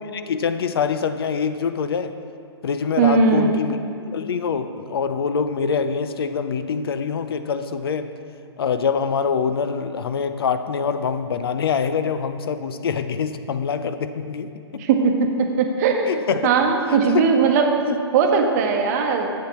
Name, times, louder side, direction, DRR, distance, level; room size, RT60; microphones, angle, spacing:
voice 1, 0.1-2.2 2.6-8.1 8.6-14.9 16.1-16.5 16.9-17.3 17.9-18.0, left 6 dB, 60° left, 10 dB, 0.5 m, -25 dB
voice 2, 3.0-3.5 14.8-17.7 18.1-19.3, right 5 dB, 35° right, 4 dB, 1.0 m, -19 dB
11.0 x 8.5 x 3.0 m, 2.4 s
figure-of-eight pair, 125°, 15 cm